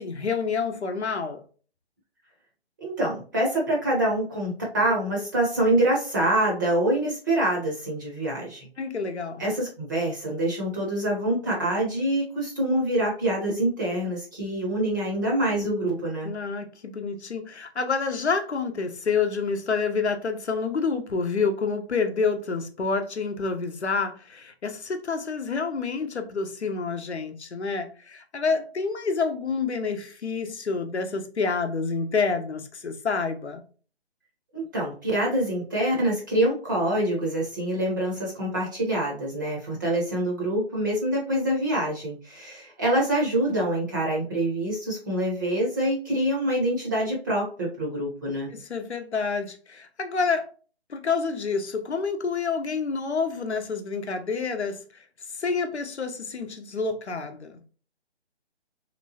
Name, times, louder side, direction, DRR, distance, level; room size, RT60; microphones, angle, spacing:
voice 1, 0.0-1.4 8.8-9.4 16.2-33.6 48.5-50.5 50.9-55.0 55.3-57.6, left 4 dB, 90° left, 0.7 m, -28 dB
voice 2, 2.8-8.7 9.4-16.3 34.5-48.5, right 1 dB, 20° right, 0.5 m, -25 dB
3.1 x 2.9 x 2.7 m
figure-of-eight pair, 145°, 32 cm